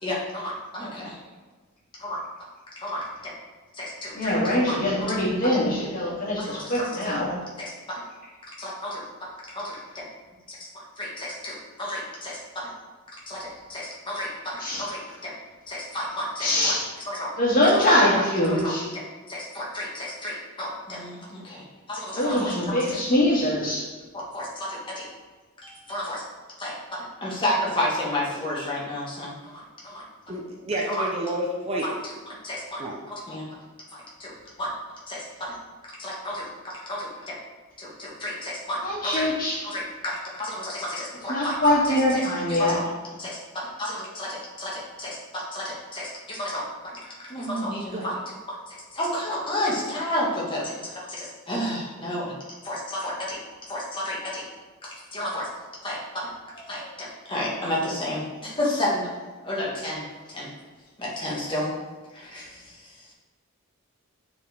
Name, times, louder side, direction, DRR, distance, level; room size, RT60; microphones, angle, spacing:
voice 1, 0.0-1.2 2.0-2.2 2.7-3.3 3.7-5.2 6.4-7.0 7.6-7.7 8.6-9.0 9.5-10.0 11.0-12.7 13.3-15.3 15.7-16.7 17.1-17.3 17.9-18.0 18.5-18.9 19.3-22.5 22.8-23.0 24.1-25.0 25.6-26.2 26.6-30.0 30.9-31.0 31.8-33.5 33.9-34.3 34.6-34.7 35.1-35.5 36.0-37.4 37.8-39.3 39.6-42.2 42.5-42.9 43.2-46.7 46.9-48.3 48.7-52.3 52.6-53.4 53.7-54.4 54.8-55.5 55.8-56.3 56.5-59.1 59.4-60.0 60.3-60.5 61.0-61.7 62.1-62.9, left 1 dB, 20° left, -5 dB, 1.6 m, -32 dB
voice 2, 4.1-7.3 14.6-14.9 16.4-16.9 17.4-18.9 22.1-23.9 38.8-39.6 41.3-42.8, left 1 dB, 40° left, -6 dB, 2.1 m, -23 dB
voice 3, 30.3-31.9 32.8-33.0 47.9-48.0, right 1 dB, 25° right, -1 dB, 0.6 m, -29 dB
7.7 x 4.4 x 3.5 m, 1.3 s
head